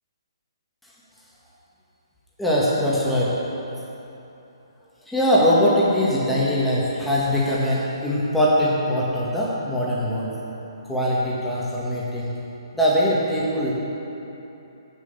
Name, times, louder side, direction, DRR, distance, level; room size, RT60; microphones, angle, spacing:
voice 1, 2.4-3.4 5.1-10.4 10.9-12.3 12.7-13.7, equal, 5° left, -8 dB, 1.8 m, -21 dB
7.4 x 7.0 x 7.0 m, 3.0 s
figure-of-eight pair, 135°, 3 cm